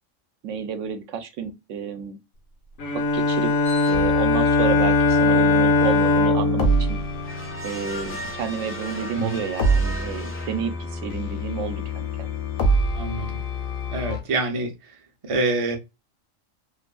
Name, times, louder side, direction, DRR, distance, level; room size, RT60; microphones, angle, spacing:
voice 1, 0.4-2.2 2.9-7.0 7.6-12.3, right 6 dB, 75° right, 0.9 m, -31 dB
Bowed string instrument, 2.8-8.0, left 2 dB, 80° left, 1.0 m, -21 dB
sound 1, 3.6-4.4 7.2-11.1, equal, 15° left, 0.6 m, -38 dB
sound 2, 3.9-14.2, right 1 dB, 55° left, 0.8 m, -27 dB
voice 2, 12.9-13.4 13.9-14.7 15.3-15.8, right 2 dB, 35° right, 0.5 m, -25 dB
2.5 x 2.5 x 2.2 m
omnidirectional pair, 1.3 m